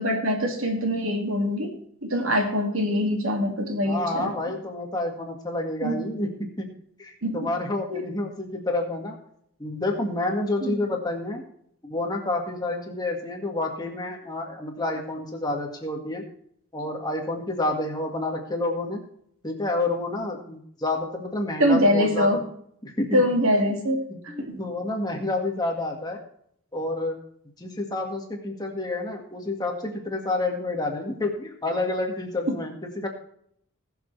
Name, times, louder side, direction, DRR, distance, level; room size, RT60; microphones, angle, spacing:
voice 1, 0.0-4.3 5.8-6.0 7.2-7.4 7.9-8.0 10.6-10.8 21.6-22.4 23.1-24.6 32.5-32.6, equal, 75° right, 3 dB, 2.3 m, -24 dB
voice 2, 3.8-6.3 6.6-6.7 7.0-9.2 9.6-11.4 11.8-16.2 16.7-19.0 19.4-22.3 22.8-23.3 24.1-26.2 26.7-27.1 27.6-33.1, left 2 dB, 20° left, 1 dB, 1.9 m, -29 dB
20.0 x 7.1 x 3.3 m, 0.69 s
head